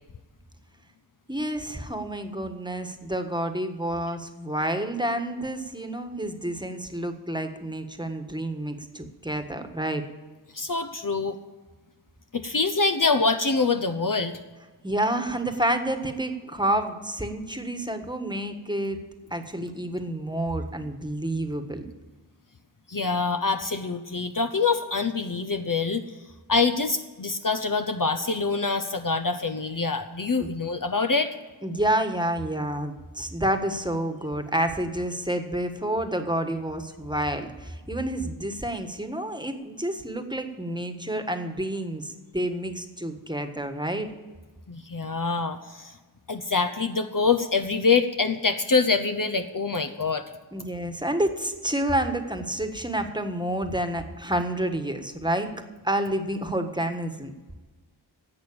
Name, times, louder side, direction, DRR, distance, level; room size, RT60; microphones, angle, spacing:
voice 1, 1.3-10.0 14.8-19.0 19.3-21.8 30.4-30.5 31.6-44.1 50.5-55.5 55.8-57.3, right 1 dB, 10° right, 6 dB, 1.5 m, -29 dB
voice 2, 10.5-11.4 12.3-14.4 22.9-26.0 26.5-31.4 44.7-46.0 46.3-50.2, left 4 dB, 45° left, 8 dB, 0.8 m, -25 dB
11.5 x 8.0 x 8.7 m, 1.3 s
wide cardioid pair, 55°, 45 cm